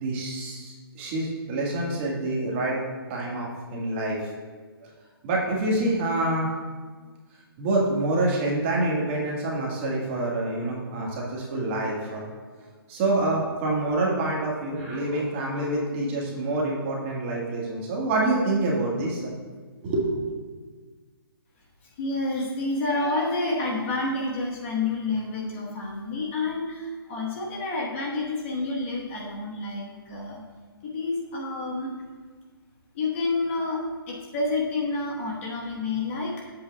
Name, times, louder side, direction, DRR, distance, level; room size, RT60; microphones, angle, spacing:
voice 1, 0.0-2.8 3.1-4.3 4.8-4.9 5.2-6.5 7.6-12.2 12.9-19.3 19.8-20.3, right 2 dB, 30° right, -3 dB, 1.5 m, -27 dB
voice 2, 22.0-30.4 30.8-31.9 32.9-36.5, left 3 dB, 30° left, -2 dB, 1.1 m, -29 dB
10.5 x 7.8 x 2.2 m, 1.4 s
hypercardioid pair, 155°, 13 cm